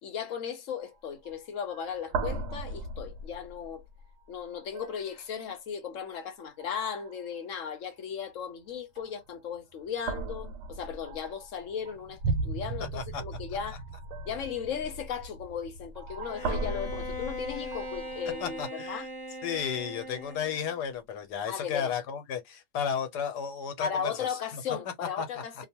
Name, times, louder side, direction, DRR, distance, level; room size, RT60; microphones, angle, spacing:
voice 1, 0.0-3.8 4.3-13.8 14.3-19.1 21.5-21.9 23.8-25.7, left 7 dB, 65° left, 0.9 m, -36 dB
sound 1, 0.8-1.0 1.3-1.5 1.7-4.1 4.6-5.1 5.9-6.2 6.6-7.4 9.0-9.4 10.0-18.6, right 3 dB, 80° right, 1.2 m, -37 dB
Bowed string instrument, 16.2-20.6, left 1 dB, 20° left, 0.6 m, -40 dB
voice 2, 18.4-19.1 19.4-24.6 25.2-25.3, left 7 dB, 85° left, 1.4 m, -33 dB
2.9 x 2.2 x 2.8 m
omnidirectional pair, 1.7 m